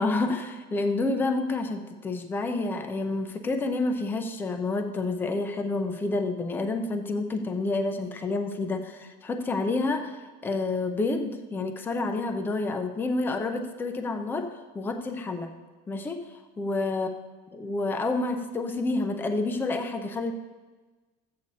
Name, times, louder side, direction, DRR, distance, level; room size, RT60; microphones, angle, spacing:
voice 1, 0.0-14.5 14.7-15.5 15.9-16.3 16.6-17.1 17.5-20.3, left 3 dB, 10° left, 6 dB, 0.5 m, -29 dB
13.0 x 8.4 x 4.1 m, 1.3 s
cardioid pair, 175°, 21 cm